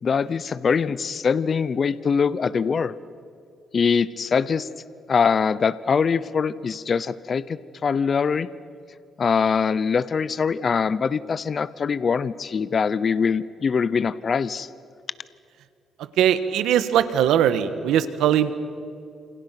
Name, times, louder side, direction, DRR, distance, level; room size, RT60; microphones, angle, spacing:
voice 1, 0.0-2.9 3.7-4.7 5.1-8.5 9.2-14.7, left 6 dB, 45° left, 17 dB, 0.7 m, -23 dB
voice 2, 16.2-18.5, right 10 dB, 85° right, 11 dB, 1.5 m, -20 dB
29.0 x 27.5 x 6.0 m, 2.4 s
cardioid pair, 90°, 0 cm